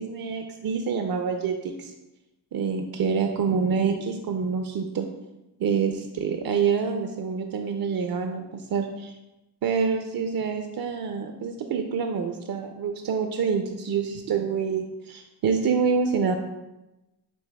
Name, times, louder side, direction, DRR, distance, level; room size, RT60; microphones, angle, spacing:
voice 1, 0.0-1.9 2.5-5.1 5.6-9.1 9.6-16.3, right 6 dB, 50° right, 4 dB, 0.5 m, -27 dB
7.6 x 2.8 x 2.2 m, 0.99 s
cardioid pair, 50°, 46 cm